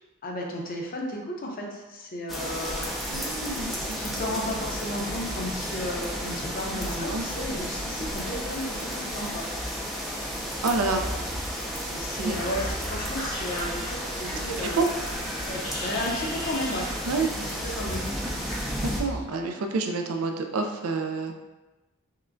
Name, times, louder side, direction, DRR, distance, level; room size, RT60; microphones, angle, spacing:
voice 1, 0.2-2.9 3.9-9.5 11.8-14.8 15.5-16.9 17.3-18.1, left 1 dB, 40° left, -1 dB, 0.6 m, -34 dB
sound 1, 2.3-19.0, equal, ahead, 0.4 m, -33 dB
voice 2, 3.1-4.0 6.8-7.3 10.6-11.1 12.2-12.4 14.6-14.9 17.0-17.3 18.8-21.3, right 3 dB, 75° right, 4 dB, 0.4 m, -28 dB
sound 2, 10.7-19.2, equal, 90° left, 1.5 m, -38 dB
5.7 x 2.1 x 2.5 m, 1.1 s
head